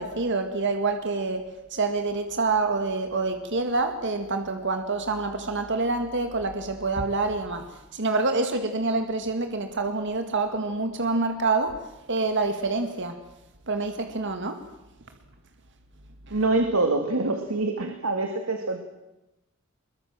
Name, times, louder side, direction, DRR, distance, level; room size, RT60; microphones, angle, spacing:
voice 1, 0.0-1.4 1.7-7.6 7.9-11.8 12.1-13.2 13.7-14.6 16.3-16.4, right 3 dB, 60° right, 6 dB, 2.1 m, -27 dB
voice 2, 16.3-18.8, right 2 dB, 80° right, 5 dB, 2.3 m, -25 dB
24.5 x 22.5 x 7.6 m, 0.96 s
head